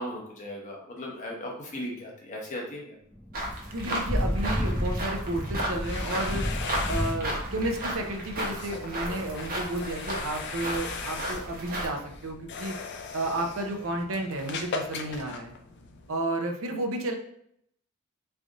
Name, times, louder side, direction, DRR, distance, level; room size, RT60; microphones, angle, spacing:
voice 1, 0.0-3.0, equal, 35° left, -2 dB, 1.0 m, -37 dB
Thunder / Rain, 3.1-12.6, equal, 10° right, 1.1 m, -34 dB
sound 1, 3.3-11.9, right 1 dB, 45° right, 0.9 m, -34 dB
voice 2, 3.7-6.5 6.9-12.7 13.1-15.5 16.1-17.2, right 1 dB, 70° right, 4 dB, 0.6 m, -32 dB
sound 2, 5.6-16.2, left 5 dB, 55° left, 0.4 m, -39 dB
3.3 x 2.6 x 3.6 m, 0.70 s
head